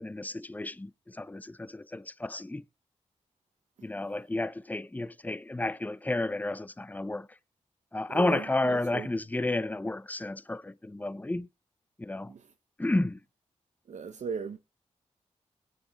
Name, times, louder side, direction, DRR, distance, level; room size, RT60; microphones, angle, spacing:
voice 1, 0.0-2.6 3.8-7.3 7.9-11.5 12.0-12.3 12.8-13.2, left 2 dB, 15° left, 0.6 m, -31 dB
voice 2, 8.1-9.1 12.3-12.4 13.9-14.6, right 5 dB, 75° right, 0.8 m, -37 dB
21.0 x 9.2 x 2.4 m
cardioid pair, 65°, 12 cm